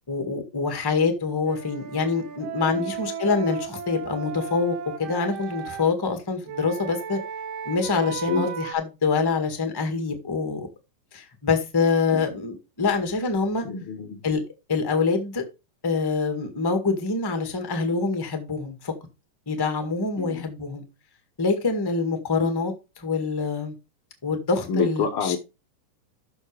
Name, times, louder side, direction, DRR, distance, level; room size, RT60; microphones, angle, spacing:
voice 1, 0.1-7.2 7.6-10.7 11.1-13.7 14.2-14.4 14.7-15.4 15.8-18.9 19.5-20.8 21.4-23.7 24.2-25.4, left 4 dB, 15° left, 0.9 m, -25 dB
Wind instrument woodwind instrument, 1.5-5.9 6.4-8.7, right 8 dB, 60° right, 1.9 m, -35 dB
voice 2, 13.6-14.2 20.2-20.5 24.7-25.4, left 5 dB, 70° left, 1.3 m, -28 dB
12.5 x 6.4 x 3.3 m
omnidirectional pair, 3.8 m